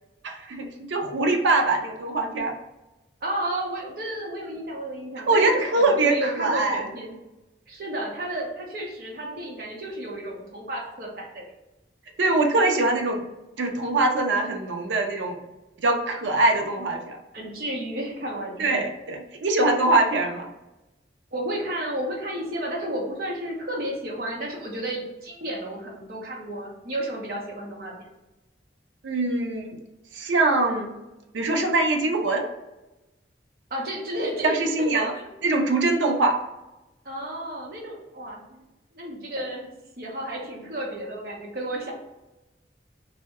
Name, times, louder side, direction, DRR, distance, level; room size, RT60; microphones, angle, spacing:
voice 1, 0.2-2.5 5.3-6.8 12.2-13.2 13.6-15.4 15.8-17.2 18.6-20.5 29.0-29.8 30.1-31.0 31.3-32.5 34.4-35.1 35.4-36.4, right 2 dB, 90° right, 3 dB, 0.5 m, -23 dB
voice 2, 3.2-7.2 7.7-11.4 17.3-18.8 21.3-28.1 33.7-34.6 34.9-35.3 37.0-38.4 38.9-39.7 40.0-41.9, right 1 dB, 55° right, -2 dB, 0.7 m, -32 dB
2.6 x 2.1 x 3.5 m, 1.0 s
head